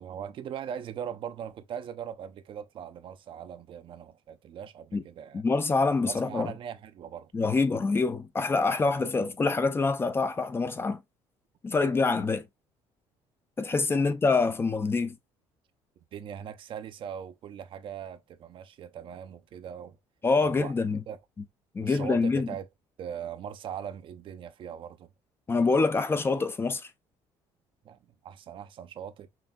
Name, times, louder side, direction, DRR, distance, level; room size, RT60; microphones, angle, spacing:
voice 1, 0.0-5.4 6.0-7.3 13.9-14.0 16.1-20.0 20.4-20.7 21.1-21.2 21.8-22.7 23.0-25.1 27.8-29.3, right 8 dB, 50° right, 0.5 m, -40 dB
voice 2, 5.3-6.5 7.3-11.0 11.6-12.4 13.6-15.2 20.2-21.0 21.7-22.5 25.5-26.8, left 4 dB, 20° left, 0.4 m, -25 dB
5.8 x 2.6 x 2.2 m
cardioid pair, 115°, 11 cm